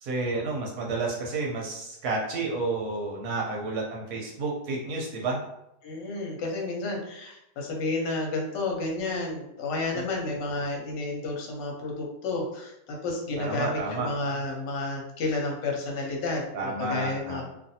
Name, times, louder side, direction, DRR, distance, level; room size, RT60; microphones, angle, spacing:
voice 1, 0.0-5.4 9.9-10.0 13.4-14.1 16.5-17.5, right 3 dB, 70° right, -1 dB, 1.0 m, -30 dB
voice 2, 5.8-17.5, left 2 dB, 80° left, 0 dB, 1.3 m, -31 dB
2.7 x 2.5 x 2.7 m, 0.83 s
omnidirectional pair, 1.9 m